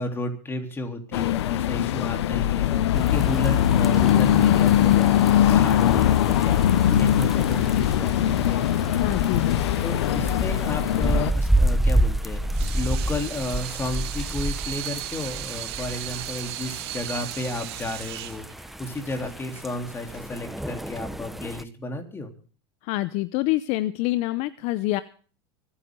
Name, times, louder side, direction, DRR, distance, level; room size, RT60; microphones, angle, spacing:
voice 1, 0.0-8.6 9.8-12.4 12.7-18.5 18.8-22.3, left 2 dB, 15° left, 4 dB, 3.5 m, -33 dB
sound 1, 1.1-11.3, left 11 dB, 90° left, 0.7 m, -21 dB
sound 2, 2.9-21.6, right 1 dB, ahead, 0.8 m, -29 dB
voice 2, 9.0-9.8 22.8-25.0, left 17 dB, 55° left, 14 dB, 0.8 m, -26 dB
Water tap faucet / Sink (filling or washing), 12.3-20.4, right 15 dB, 75° right, 1.6 m, -36 dB
25.5 x 10.0 x 3.8 m, 0.41 s
supercardioid pair, 125°, 14 cm